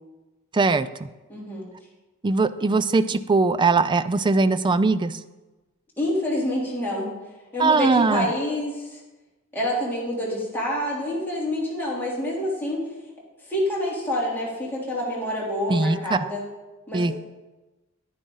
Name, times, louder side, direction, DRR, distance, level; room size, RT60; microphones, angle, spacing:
voice 1, 0.5-0.9 2.2-5.2 7.6-8.3 15.7-16.2 16.9-17.1, right 3 dB, 20° right, 14 dB, 0.4 m, -20 dB
voice 2, 1.3-1.6 6.0-7.1 7.5-9.0 9.5-12.8 13.4-16.4 16.9-17.1, left 1 dB, 10° left, -6 dB, 3.2 m, -27 dB
10.5 x 10.0 x 3.9 m, 1.1 s
head